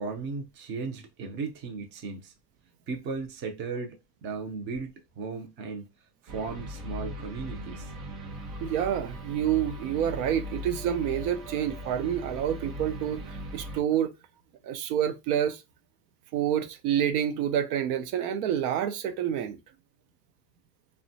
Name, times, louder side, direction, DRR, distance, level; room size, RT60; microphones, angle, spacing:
voice 1, 0.0-2.3 2.9-5.8 6.2-7.9, right 4 dB, 25° right, 0.4 m, -36 dB
sound 1, 6.3-13.8, equal, 55° right, 0.8 m, -39 dB
voice 2, 8.6-14.1 14.6-15.6 16.3-19.6, right 10 dB, 85° right, 0.6 m, -28 dB
2.8 x 2.2 x 2.6 m
supercardioid pair, 150°, 43 cm